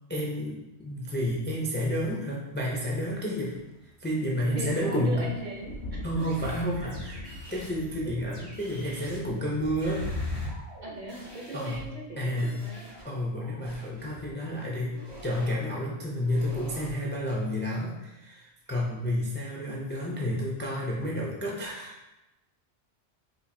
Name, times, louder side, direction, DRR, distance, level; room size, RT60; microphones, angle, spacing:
voice 1, 0.1-3.6 4.0-5.2 6.0-7.2 7.5-10.0 11.5-11.8 12.2-12.6 13.0-15.0 15.2-21.9, equal, 15° left, -4 dB, 0.3 m, -30 dB
sound 1, 2.7-3.2 4.1-10.6, left 2 dB, 70° left, 0.9 m, -39 dB
voice 2, 4.3-6.1 6.8-6.9 10.8-12.9 18.8-19.4, right 2 dB, 50° right, -1 dB, 0.7 m, -40 dB
sound 2, 6.2-7.9 8.3-12.1 12.4-14.3 14.9-15.6 16.2-16.9, equal, 85° right, 2.0 m, -47 dB
4.5 x 2.6 x 2.6 m, 0.97 s
omnidirectional pair, 1.1 m